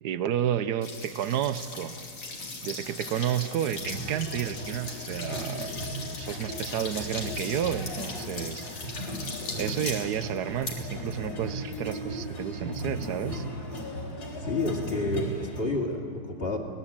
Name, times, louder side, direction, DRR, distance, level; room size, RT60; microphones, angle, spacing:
voice 1, 0.0-2.0 2.6-5.8 6.0-8.7 9.6-13.4, right 10 dB, 65° right, 13 dB, 1.1 m, -31 dB
sound 1, 0.8-12.5, left 3 dB, 80° left, 3.8 m, -39 dB
sound 2, 3.7-15.6, equal, 50° left, 4.3 m, -37 dB
voice 2, 14.4-16.6, left 2 dB, 30° left, 0 dB, 2.5 m, -30 dB
23.5 x 18.5 x 8.8 m, 2.4 s
omnidirectional pair, 2.2 m